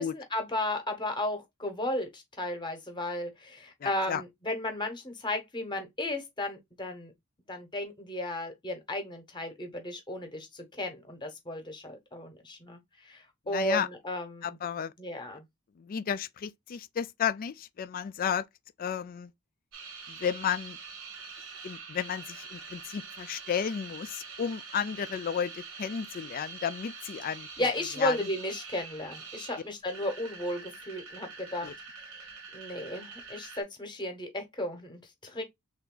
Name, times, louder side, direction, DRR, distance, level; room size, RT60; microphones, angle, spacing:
voice 1, 0.0-7.1 7.5-14.6 15.0-15.4 27.6-31.7 32.5-35.4, left 1 dB, 20° left, 1.0 m, -34 dB
voice 2, 3.8-4.2 13.5-13.9 14.4-14.9 15.3-15.4 15.8-18.5 18.8-19.3 20.1-20.8 21.6-27.5 28.0-28.2 31.6-31.7, left 8 dB, 40° left, 0.3 m, -33 dB
sound 1, 19.7-33.6, right 5 dB, 70° right, 1.0 m, -45 dB
3.4 x 2.6 x 3.7 m
head